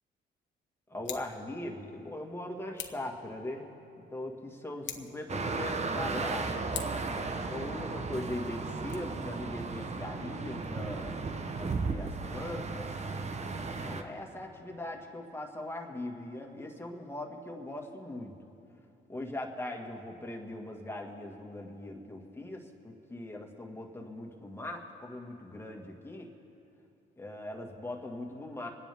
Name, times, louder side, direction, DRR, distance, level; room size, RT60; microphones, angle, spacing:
voice 1, 0.9-3.7 4.1-6.6 7.5-11.3 11.6-12.9 13.8-18.3 19.1-26.3 27.2-28.7, left 1 dB, 10° left, 0 dB, 1.8 m, -40 dB
Scissors, 1.0-1.4 2.7-3.1 4.8-5.3 6.7-7.1 8.7-8.9, left 9 dB, 70° left, 1.1 m, -41 dB
sound 1, 5.3-14.0, right 4 dB, 35° right, 0.9 m, -35 dB
27.0 x 9.9 x 3.5 m, 2.8 s
cardioid pair, 90°, 20 cm